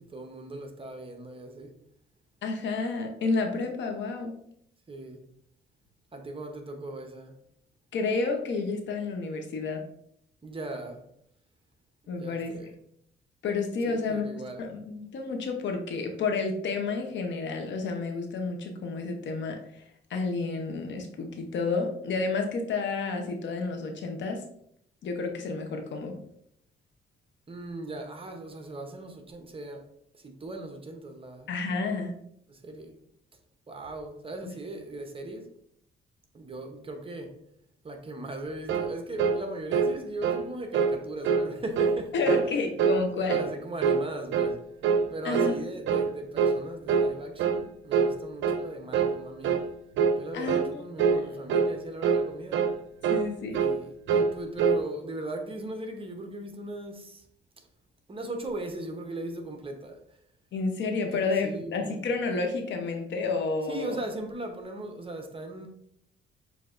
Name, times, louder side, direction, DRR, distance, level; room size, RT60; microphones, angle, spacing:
voice 1, 0.0-1.7 4.9-5.2 6.1-7.4 10.4-11.0 12.1-12.7 13.9-14.7 27.5-29.9 30.1-31.5 32.5-32.9 33.7-35.5 36.3-37.4 37.8-42.1 42.5-42.6 43.2-44.6 45.1-49.7 50.2-52.6 53.5-57.2 58.1-60.0 61.1-62.0 63.7-65.7, right 2 dB, 25° right, 0.8 m, -38 dB
voice 2, 2.4-4.3 7.9-9.8 12.1-12.5 13.4-19.8 20.1-24.4 25.0-26.1 31.5-32.1 42.1-43.4 45.2-45.5 50.3-51.4 53.1-53.6 60.5-64.0, left 4 dB, 65° left, 0.9 m, -30 dB
sound 1, 38.7-38.9 39.2-39.4 39.7-39.9 40.2-40.4 40.7-41.0 41.2-41.5 41.8-42.0 42.3-42.5 42.8-43.0 43.3-43.5 43.8-44.0 44.3-44.5 44.8-45.1 45.3-45.6 45.9-46.1 46.4-46.6 46.9-47.1 47.4-47.6 47.9-48.1 48.4-48.6 48.9-49.2 49.4-49.7 50.0-50.2 50.5-50.7 51.0-51.2 51.5-51.7 52.0-52.3 52.5-52.7 53.0-53.3 53.5-53.8 54.1-54.3 54.6-54.8, right 6 dB, 70° right, 0.5 m, -24 dB
6.8 x 2.7 x 2.5 m
cardioid pair, 90°, 20 cm